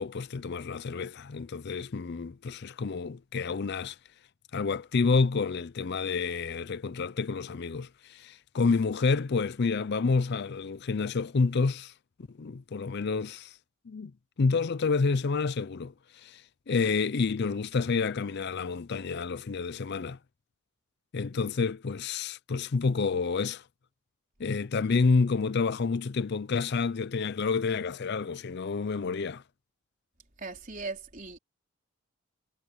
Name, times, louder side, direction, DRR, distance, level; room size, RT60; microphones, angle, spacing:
voice 1, 0.0-4.0 4.5-11.9 12.4-13.6 13.9-14.1 14.4-16.4 16.7-20.2 21.1-23.6 24.4-29.4, left 4 dB, 50° left, 0.5 m, -29 dB
voice 2, 30.4-31.4, right 3 dB, 40° right, 4.3 m, -38 dB
head